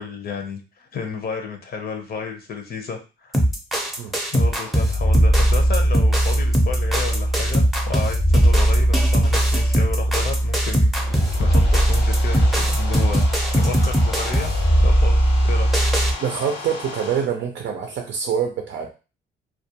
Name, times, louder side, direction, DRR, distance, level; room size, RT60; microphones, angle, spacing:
voice 1, 0.0-3.4 4.3-13.2 13.5-14.5 14.8-15.1 15.4-15.7, left 5 dB, 50° left, 4 dB, 0.6 m, -32 dB
sound 1, 3.3-16.1, right 1 dB, ahead, 0.6 m, -18 dB
sound 2, 10.8-17.2, left 2 dB, 90° left, 1.2 m, -35 dB
voice 2, 16.2-18.9, right 7 dB, 65° right, 3 dB, 0.5 m, -25 dB
2.3 x 2.2 x 2.8 m, 0.32 s
cardioid pair, 90°, 20 cm